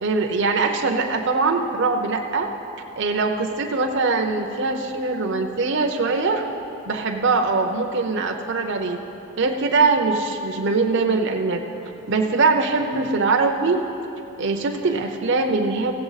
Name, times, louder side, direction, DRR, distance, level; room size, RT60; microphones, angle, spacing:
voice 1, 0.0-2.5 3.0-6.4 6.9-9.0 9.4-11.6 12.1-13.8 14.4-15.9, right 3 dB, 55° right, 3 dB, 0.6 m, -22 dB
15.5 x 7.7 x 4.0 m, 3.0 s
head